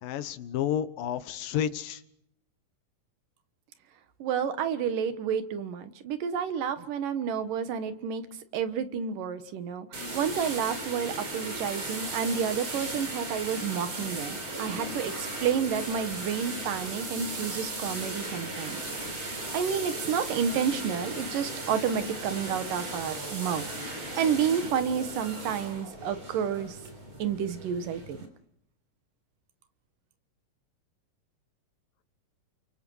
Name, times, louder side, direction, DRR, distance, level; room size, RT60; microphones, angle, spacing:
voice 1, 0.0-2.0, left 10 dB, 90° left, 12 dB, 2.9 m, -31 dB
voice 2, 4.2-8.2 8.5-18.8 19.5-23.7 23.9-26.8 27.2-28.2, right 7 dB, 80° right, 10 dB, 3.0 m, -30 dB
sound 1, 9.9-28.3, right 2 dB, 40° right, 4.7 m, -37 dB
29.0 x 24.0 x 6.3 m, 0.74 s
omnidirectional pair, 3.8 m